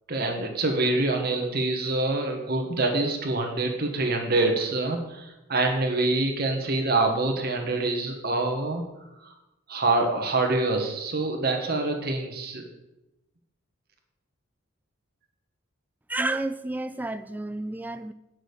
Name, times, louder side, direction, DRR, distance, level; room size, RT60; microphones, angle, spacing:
voice 1, 0.1-8.8 9.2-9.3 9.7-12.7, right 2 dB, 45° right, 1.3 m, -26 dB
voice 2, 16.1-18.1, right 2 dB, 10° right, 0.3 m, -30 dB
8.9 x 6.2 x 6.6 m
head